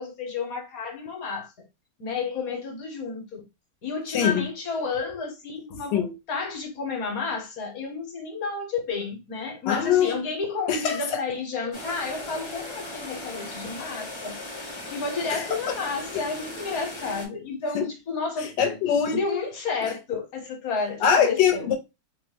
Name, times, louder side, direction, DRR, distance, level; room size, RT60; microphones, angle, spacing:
voice 1, 0.0-1.5 2.0-3.4 3.8-14.4 14.9-18.5 19.1-21.7, left 4 dB, 60° left, 1.3 m, -31 dB
voice 2, 4.1-4.4 5.9-6.1 9.7-10.2 10.7-11.2 15.3-15.4 17.7-17.9 18.6-19.2 21.0-21.8, left 8 dB, 90° left, 1.3 m, -22 dB
sound 1, 11.7-17.3, left 2 dB, 30° left, 0.5 m, -38 dB
3.0 x 2.0 x 3.3 m
omnidirectional pair, 1.8 m